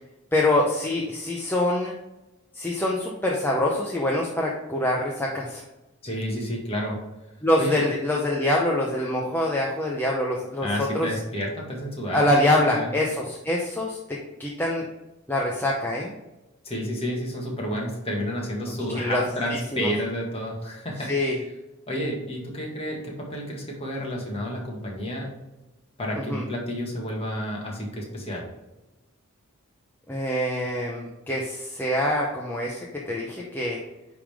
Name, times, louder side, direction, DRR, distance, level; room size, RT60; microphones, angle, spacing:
voice 1, 0.3-1.9 2.5-5.6 7.4-11.1 12.1-14.8 15.3-16.1 18.7-19.2 19.5-19.9 21.1-21.4 26.2-26.4 30.1-33.8, left 1 dB, 10° left, -3 dB, 0.7 m, -25 dB
voice 2, 6.0-7.0 7.6-7.8 10.6-12.9 16.6-21.1 21.9-25.3 26.0-28.5, equal, 25° left, -2 dB, 1.6 m, -30 dB
9.8 x 3.6 x 3.5 m, 1.0 s
head